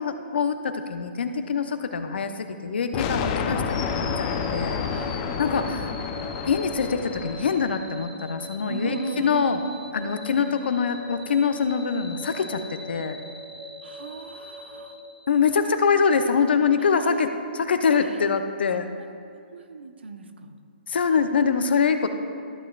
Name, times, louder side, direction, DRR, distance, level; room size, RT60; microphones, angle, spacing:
voice 1, 0.0-4.8 5.4-5.9 6.5-9.6 9.9-12.6 12.9-13.2 15.3-17.3 17.5-18.9 20.9-22.1, left 6 dB, 65° left, 8 dB, 0.7 m, -24 dB
sound 1, 2.9-7.8, left 6 dB, 30° left, 0.6 m, -29 dB
sound 2, 3.7-15.8, left 1 dB, 10° left, 1.8 m, -40 dB
voice 2, 4.9-5.9 8.7-9.9 10.3-10.5 13.8-15.0 16.8-17.2 18.0-18.3 19.0-19.1 19.5-20.5, right 4 dB, 75° right, 7 dB, 0.8 m, -37 dB
14.0 x 7.8 x 2.4 m, 2.4 s
hypercardioid pair, 140°, 6 cm